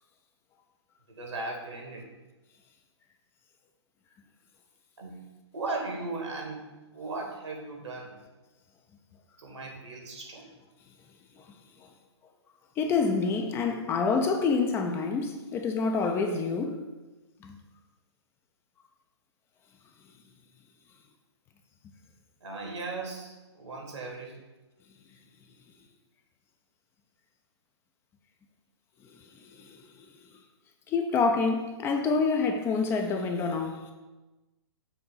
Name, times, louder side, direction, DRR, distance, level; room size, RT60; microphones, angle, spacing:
voice 1, 1.1-2.1 5.0-5.2 5.5-8.2 9.4-10.5 22.4-24.4, right 3 dB, 80° right, 1.9 m, -37 dB
voice 2, 12.8-16.8 17.4-17.6 29.7-29.8 30.9-33.9, left 4 dB, 15° left, 0.4 m, -27 dB
6.9 x 2.7 x 5.6 m
hypercardioid pair, 130°, 15 cm